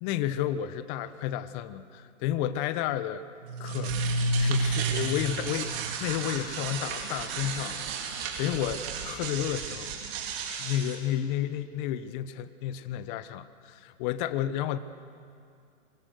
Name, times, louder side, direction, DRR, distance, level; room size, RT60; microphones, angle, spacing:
voice 1, 0.0-3.2 3.6-4.0 4.3-5.7 6.0-10.0 10.6-14.8, left 11 dB, 40° left, 13 dB, 1.2 m, -31 dB
sound 1, 3.4-11.0, right 3 dB, 45° right, 4.0 m, -31 dB
25.5 x 24.5 x 6.5 m, 2.4 s
hypercardioid pair, 120°, 39 cm